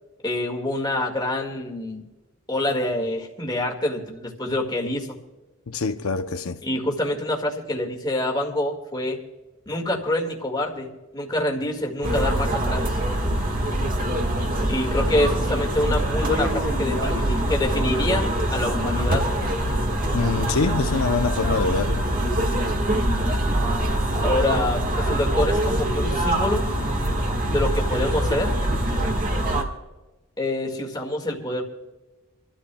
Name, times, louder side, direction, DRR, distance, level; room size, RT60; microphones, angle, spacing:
voice 1, 0.2-2.0 2.5-5.2 6.6-9.2 9.7-13.0 14.7-19.3 24.2-26.7 27.5-28.6 30.4-31.6, left 1 dB, 20° left, 1.9 m, -26 dB
voice 2, 5.7-6.6 20.1-22.1, left 4 dB, 90° left, 0.7 m, -25 dB
sound 1, 12.0-29.6, right 1 dB, 40° right, 1.6 m, -24 dB
27.5 x 13.0 x 2.3 m
head